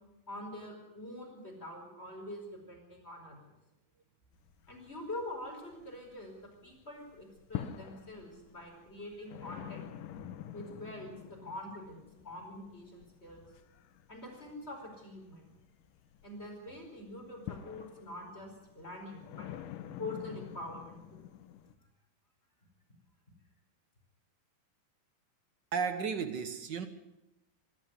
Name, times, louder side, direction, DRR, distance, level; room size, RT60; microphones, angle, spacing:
voice 1, 0.3-3.5 4.7-6.4 6.6-9.9 10.5-13.4 14.1-15.5 16.2-19.5 20.0-21.0, left 1 dB, 20° left, 1 dB, 4.9 m, -45 dB
sound 1, 4.3-6.5 6.8-21.8, left 11 dB, 85° left, 2.7 m, -47 dB
voice 2, 25.7-26.9, right 6 dB, 55° right, 10 dB, 1.2 m, -33 dB
23.5 x 13.0 x 9.8 m, 0.94 s
omnidirectional pair, 3.7 m